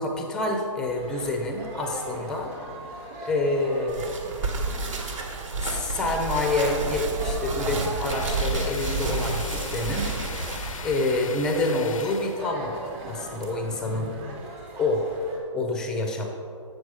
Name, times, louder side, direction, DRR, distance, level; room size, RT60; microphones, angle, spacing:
voice 1, 0.0-2.5 3.2-4.2 5.6-10.1 10.8-14.1 14.8-15.1 15.5-16.3, left 2 dB, 5° left, 2 dB, 0.5 m, -27 dB
sound 1, 0.8-15.4, right 2 dB, 20° right, 1.2 m, -40 dB
sound 2, 3.9-10.9, right 3 dB, 70° right, 1.4 m, -30 dB
sound 3, 8.1-12.4, left 7 dB, 85° left, 0.5 m, -39 dB
8.0 x 6.2 x 4.8 m, 2.4 s
hypercardioid pair, 160°, 17 cm